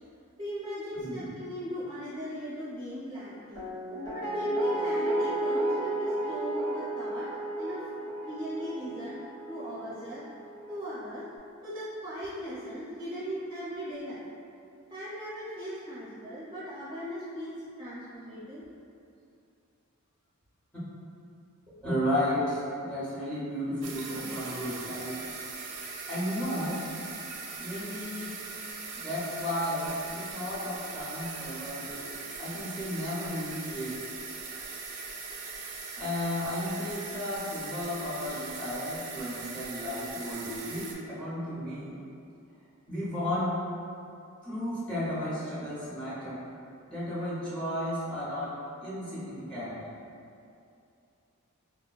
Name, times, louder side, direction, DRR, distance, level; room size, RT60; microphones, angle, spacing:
voice 1, 0.4-3.6 4.1-7.3 7.6-7.9 8.2-9.2 9.5-10.2 10.7-11.3 11.6-14.3 14.9-18.6 21.7-21.9, equal, 20° right, -12 dB, 0.6 m, -38 dB
voice 2, 1.0-1.4 21.8-25.2 26.1-26.9 27.6-28.3 29.0-32.0 32.4-34.0 36.0-42.0 42.9-43.5 44.4-46.4 46.9-48.5 48.8-49.8, left 1 dB, 5° left, -11 dB, 0.8 m, -33 dB
Guitar, 3.5-10.6 10.9-11.0, right 1 dB, 75° left, 1.1 m, -32 dB
sound 1, 23.8-40.9, right 4 dB, 90° right, 0.4 m, -40 dB
4.1 x 2.1 x 2.3 m, 2.6 s
head